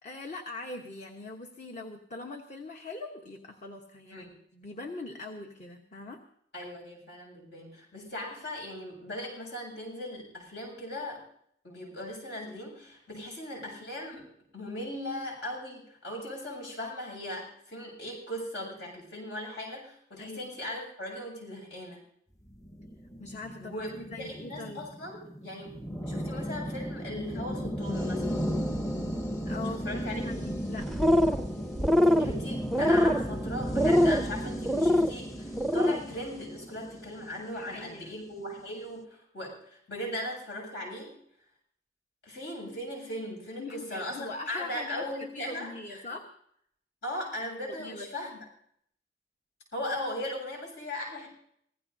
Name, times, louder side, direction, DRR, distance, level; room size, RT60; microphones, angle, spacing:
voice 1, 0.0-4.3 4.5-6.2 13.1-13.2 20.2-20.5 23.2-24.9 29.4-31.1 37.5-38.2 43.6-46.3 47.6-48.1, left 2 dB, 45° left, 3 dB, 1.1 m, -42 dB
voice 2, 6.5-11.2 11.6-14.2 14.5-22.0 23.6-25.7 26.0-28.4 29.7-30.3 32.2-41.1 42.2-46.1 47.0-48.3 49.7-51.3, left 1 dB, 80° left, 0 dB, 7.6 m, -38 dB
sound 1, 22.5-37.9, equal, 20° left, 1.0 m, -35 dB
sound 2, 30.8-31.5 31.8-32.3 32.7-33.3 33.7-34.2 34.7-35.1 35.5-36.0, left 1 dB, ahead, 0.5 m, -23 dB
25.5 x 16.0 x 2.7 m, 0.69 s
head